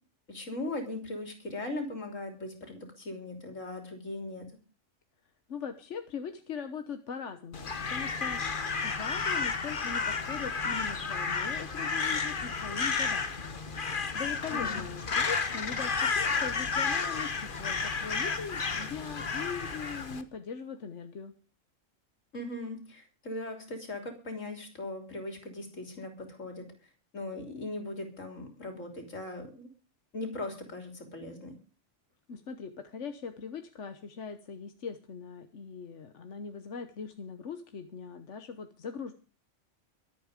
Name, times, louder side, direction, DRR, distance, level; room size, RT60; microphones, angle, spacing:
voice 1, 0.3-4.5 14.5-14.8 22.3-26.7 27.1-29.7 30.1-31.5, left 2 dB, 85° left, 4 dB, 3.8 m, -39 dB
voice 2, 5.5-8.4 8.8-13.3 13.9-21.3 32.3-39.1, left 6 dB, 70° left, 7 dB, 1.4 m, -41 dB
Crow, 7.5-20.2, left 5 dB, 45° left, 1.3 m, -32 dB
23.5 x 8.6 x 5.1 m, 0.36 s
omnidirectional pair, 1.3 m